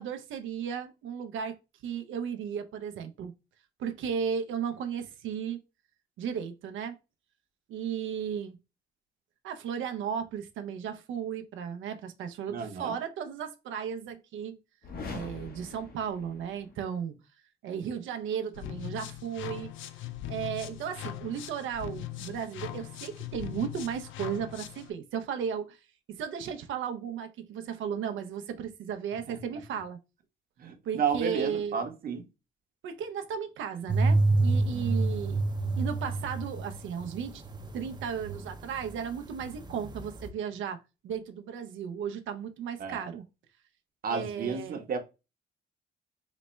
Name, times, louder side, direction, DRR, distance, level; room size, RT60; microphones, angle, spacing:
voice 1, 0.0-3.3 3.8-5.6 6.2-7.0 7.7-8.6 9.4-14.6 15.1-17.2 17.6-19.7 20.3-25.8 26.1-30.0 30.8-31.8 32.8-35.4 35.8-37.4 37.7-43.2 44.1-44.8, right 7 dB, 75° right, 0.5 m, -35 dB
voice 2, 12.5-13.0 29.3-29.4 30.6-32.2 42.8-43.0 44.0-45.0, right 6 dB, 50° right, 0.8 m, -32 dB
reverbed whoosh, 14.8-16.8, left 4 dB, 50° left, 0.9 m, -43 dB
sound 1, 18.5-24.9, left 13 dB, 75° left, 0.4 m, -40 dB
sound 2, 33.9-38.9 39.2-40.3, right 2 dB, 20° right, 0.5 m, -28 dB
4.0 x 2.1 x 3.1 m
cardioid pair, 90°, 20 cm